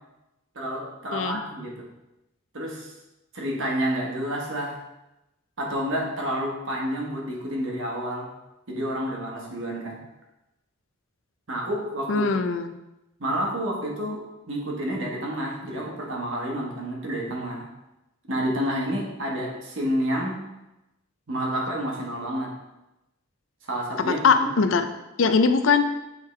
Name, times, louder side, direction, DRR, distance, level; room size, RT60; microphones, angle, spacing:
voice 1, 0.5-1.8 2.5-2.9 3.3-4.8 5.6-8.3 8.7-10.0 11.5-12.4 13.2-14.2 14.5-17.6 18.3-20.4 21.3-22.5 23.6-24.5, equal, 65° right, -2 dB, 1.4 m, -29 dB
voice 2, 12.1-12.7 24.1-24.9 25.2-25.8, left 5 dB, 65° left, 9 dB, 0.4 m, -21 dB
7.9 x 3.7 x 3.2 m, 0.95 s
head